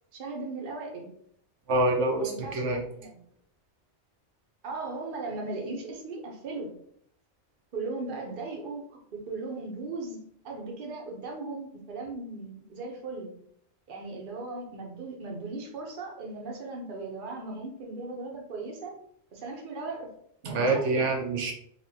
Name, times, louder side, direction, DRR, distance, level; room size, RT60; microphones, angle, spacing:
voice 1, 0.1-1.1 2.2-3.2 4.6-6.7 7.7-10.2 10.4-13.3 13.9-19.0 19.3-20.1 20.4-21.0, right 3 dB, 50° right, 0 dB, 0.9 m, -37 dB
voice 2, 1.7-2.8 20.4-21.5, right 2 dB, 80° right, 1 dB, 1.0 m, -26 dB
4.2 x 2.6 x 2.8 m, 0.67 s
omnidirectional pair, 1.2 m